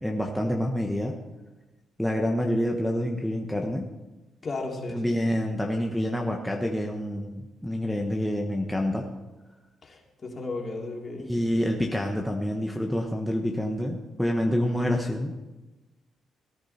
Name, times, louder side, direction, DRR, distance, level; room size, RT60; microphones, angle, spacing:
voice 1, 0.0-1.1 2.0-3.9 4.9-9.0 11.3-15.3, equal, 5° left, 0 dB, 1.2 m, -27 dB
voice 2, 4.4-5.0 9.8-11.3, left 3 dB, 40° left, -1 dB, 3.1 m, -34 dB
17.5 x 10.0 x 4.3 m, 1.1 s
cardioid pair, 90°, 0 cm